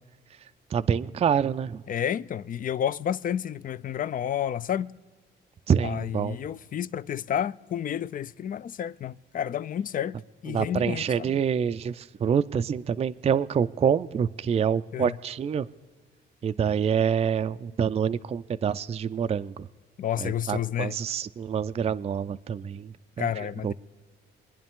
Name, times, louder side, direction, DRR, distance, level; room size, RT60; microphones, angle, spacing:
voice 1, 0.7-1.8 5.7-6.4 10.5-15.7 16.4-19.7 20.2-23.3 23.6-23.7, right 7 dB, 30° right, 0.4 m, -26 dB
voice 2, 1.9-4.9 5.8-11.3 14.9-15.2 20.0-21.0 23.2-23.7, left 9 dB, 45° left, 0.4 m, -30 dB
24.5 x 10.0 x 3.7 m
cardioid pair, 90°, 20 cm